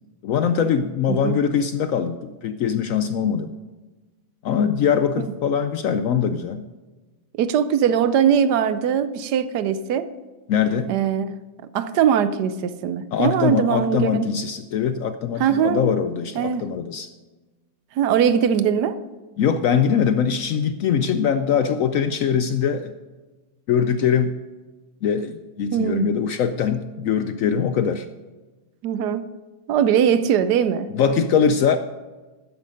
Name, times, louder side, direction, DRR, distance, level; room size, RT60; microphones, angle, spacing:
voice 1, 0.2-3.5 4.4-6.6 10.5-10.9 13.1-17.1 19.4-22.9 23.7-24.4 25.0-28.1 30.9-31.8, left 7 dB, 70° left, 10 dB, 0.8 m, -22 dB
voice 2, 1.1-1.4 5.1-5.3 7.4-10.1 10.9-11.4 11.7-14.3 15.4-15.9 16.3-16.7 18.0-19.0 25.7-26.1 28.8-29.3 29.7-31.2, right 8 dB, 75° right, 13 dB, 1.2 m, -21 dB
13.0 x 9.8 x 5.1 m, 1.2 s
omnidirectional pair, 1.8 m